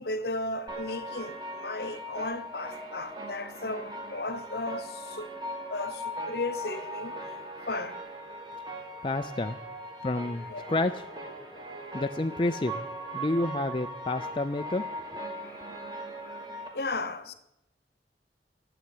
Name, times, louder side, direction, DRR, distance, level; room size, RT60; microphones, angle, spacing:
voice 1, 0.0-5.3 5.7-7.2 7.6-8.0 10.5-10.7 16.2-16.4 16.7-17.3, left 2 dB, 60° left, 1.0 m, -35 dB
sound 1, 0.7-16.7, equal, 25° right, 2.0 m, -39 dB
voice 2, 9.0-9.6 10.0-11.0 11.9-12.7 13.1-14.8, left 2 dB, 30° left, 0.4 m, -29 dB
11.5 x 8.1 x 9.3 m
head